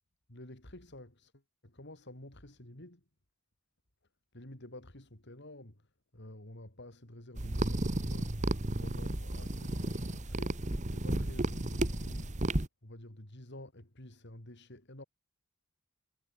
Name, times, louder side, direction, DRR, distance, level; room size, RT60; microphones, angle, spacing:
voice 1, 0.3-3.0 4.3-12.4 12.8-15.0, left 1 dB, 55° left, 3.9 m, -50 dB
sound 1, 7.4-12.7, right 1 dB, 35° right, 1.6 m, -33 dB
head